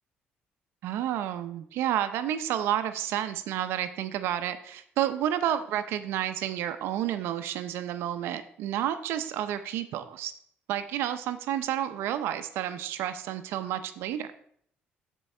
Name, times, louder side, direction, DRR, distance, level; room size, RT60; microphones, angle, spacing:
voice 1, 0.8-10.3 10.7-14.3, right 11 dB, 80° right, 10 dB, 0.6 m, -30 dB
12.0 x 4.6 x 4.3 m, 0.64 s
cardioid pair, 100°, 4 cm